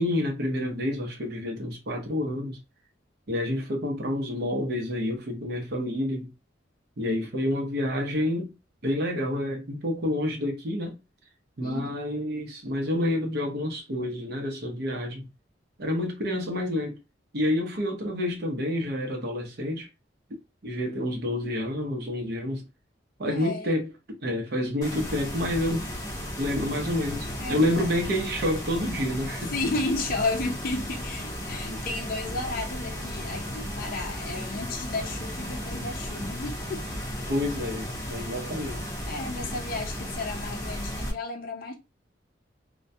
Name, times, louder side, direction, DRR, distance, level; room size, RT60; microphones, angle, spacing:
voice 1, 0.0-2.6 3.3-6.3 7.0-8.5 8.8-11.0 11.6-15.3 15.8-17.0 17.3-19.9 20.6-22.6 23.2-23.9 24.2-25.9 26.4-29.5 31.7-31.8 37.3-38.8, left 1 dB, 60° right, 0.7 m, -28 dB
voice 2, 23.2-23.8 27.4-28.0 29.5-36.9 39.1-41.7, left 3 dB, 50° left, 0.5 m, -33 dB
sound 1, 24.8-41.1, equal, 20° left, 0.8 m, -35 dB
2.2 x 2.2 x 2.6 m
head